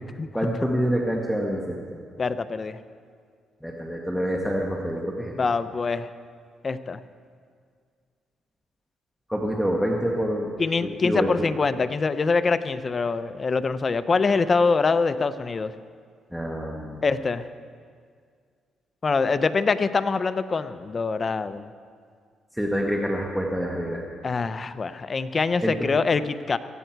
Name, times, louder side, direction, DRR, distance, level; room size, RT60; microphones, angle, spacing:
voice 1, 0.3-2.0 3.6-5.3 9.3-10.5 10.8-11.5 16.3-17.0 22.5-24.0 25.6-25.9, equal, ahead, -1 dB, 1.6 m, -27 dB
voice 2, 2.2-2.8 5.3-6.1 6.6-7.0 10.6-15.7 17.0-17.4 19.0-21.7 24.2-26.6, left 4 dB, 35° left, 12 dB, 0.6 m, -24 dB
18.0 x 15.0 x 4.6 m, 2.1 s
cardioid pair, 90°, 0 cm